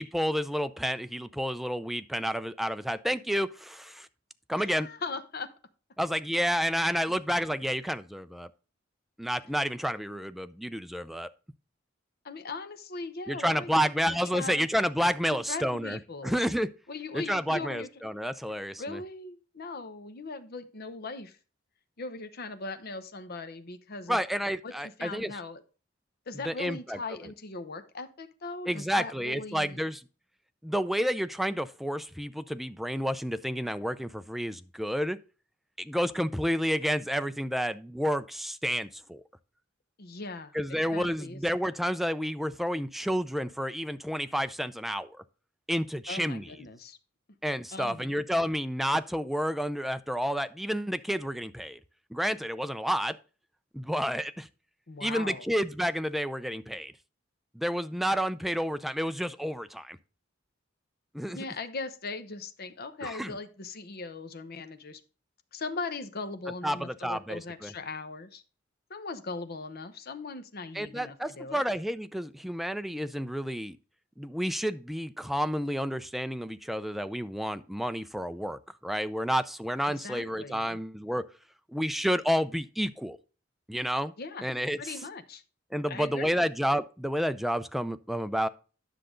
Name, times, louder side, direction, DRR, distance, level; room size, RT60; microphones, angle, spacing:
voice 1, 0.0-4.1 4.5-4.9 6.0-8.5 9.2-11.3 13.3-16.7 17.1-19.0 24.1-25.3 26.5-27.3 28.7-30.0 30.6-35.2 35.8-39.2 40.5-45.2 45.7-46.5 47.4-51.8 52.1-53.2 53.7-54.5 55.0-56.9 57.5-60.0 61.1-61.4 63.0-63.3 66.6-67.7 70.7-73.8 74.2-81.3 81.7-83.2 83.7-84.1 84.4-84.9 85.7-88.5, equal, ahead, 0.4 m, -30 dB
voice 2, 4.6-5.5 12.2-14.7 15.5-16.4 16.9-17.9 18.8-21.4 22.0-24.2 24.6-25.6 26.3-29.8 40.0-41.4 46.1-47.0 47.7-48.1 54.9-55.5 61.3-65.0 65.5-68.4 68.9-71.6 79.8-80.8 84.2-84.5 84.8-85.4 85.9-86.5, left 3 dB, 55° left, 0.9 m, -39 dB
10.0 x 6.7 x 3.8 m
head